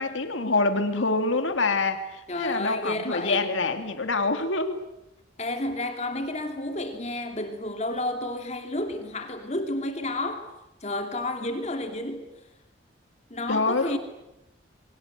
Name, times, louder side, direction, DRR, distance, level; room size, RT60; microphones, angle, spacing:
voice 1, 0.0-4.8 13.5-14.0, left 3 dB, 90° left, 7 dB, 2.3 m, -26 dB
voice 2, 2.3-3.5 5.4-10.5 10.8-12.3 13.3-14.0, left 1 dB, 35° left, 5 dB, 2.7 m, -31 dB
28.5 x 23.5 x 8.1 m, 0.91 s
head